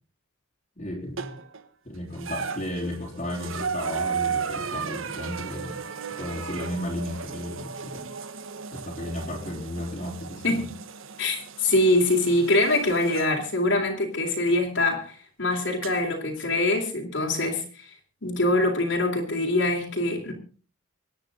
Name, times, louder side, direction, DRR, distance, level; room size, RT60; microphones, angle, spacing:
voice 1, 0.8-1.3 1.8-5.8 6.2-8.1 8.7-10.7, left 1 dB, 35° left, -3 dB, 3.9 m, -34 dB
sound 1, 1.2-1.6 2.1-13.3 14.5-14.6 15.8-15.9, right 6 dB, 80° right, 1.4 m, -35 dB
voice 2, 11.2-17.9 18.2-20.3, left 2 dB, 60° left, -1 dB, 3.9 m, -24 dB
26.0 x 10.5 x 3.9 m, 0.38 s
head